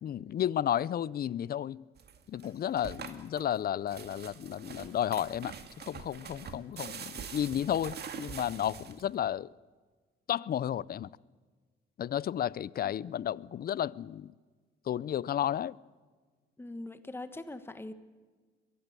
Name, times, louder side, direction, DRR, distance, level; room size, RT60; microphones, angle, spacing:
voice 1, 0.0-1.8 2.3-9.5 10.3-11.1 12.0-14.3 14.9-15.8, left 10 dB, 50° left, 0.5 m, -32 dB
sound 1, 2.0-9.2, right 7 dB, 55° right, 1.9 m, -45 dB
voice 2, 16.6-17.9, left 2 dB, 10° left, 1.4 m, -42 dB
22.5 x 14.0 x 9.2 m
cardioid pair, 90°, 20 cm